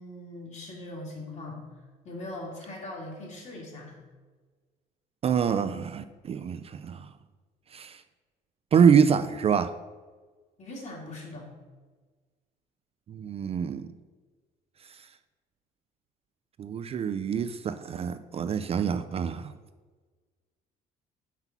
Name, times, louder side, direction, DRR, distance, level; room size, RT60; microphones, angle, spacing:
voice 1, 0.0-1.6 2.0-4.0 10.6-11.5, left 1 dB, 45° left, -2 dB, 2.5 m, -40 dB
voice 2, 5.2-7.1 7.7-8.0 8.7-9.7 13.1-13.9 14.9-15.1 16.6-19.5, right 7 dB, 35° right, 11 dB, 0.3 m, -25 dB
5.8 x 5.4 x 5.9 m, 1.4 s
cardioid pair, 110°, 17 cm